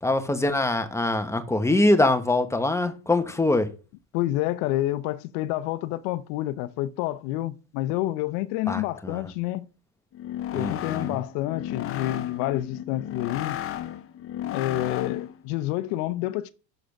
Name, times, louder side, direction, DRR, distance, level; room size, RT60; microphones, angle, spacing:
voice 1, 0.0-3.7 8.7-9.3 10.5-11.2, left 2 dB, 5° left, 1.0 m, -23 dB
voice 2, 4.1-9.7 10.5-13.6 14.5-16.5, left 15 dB, 65° left, 0.8 m, -28 dB
sound 1, 10.1-15.4, left 11 dB, 30° left, 0.6 m, -34 dB
6.5 x 4.9 x 5.9 m
supercardioid pair, 110°, 49 cm